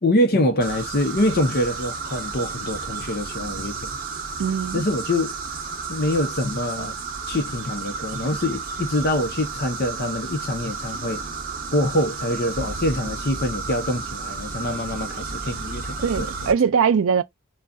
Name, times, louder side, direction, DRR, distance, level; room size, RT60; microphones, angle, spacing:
voice 1, 0.0-3.9 4.7-5.3 5.9-6.9 7.3-11.2 11.7-16.5, left 1 dB, 45° left, 0.8 m, -25 dB
sound 1, 0.6-16.5, right 4 dB, 40° right, 0.8 m, -32 dB
voice 2, 4.4-4.8 16.0-17.2, right 6 dB, 60° right, 0.4 m, -21 dB
3.8 x 2.3 x 2.3 m
head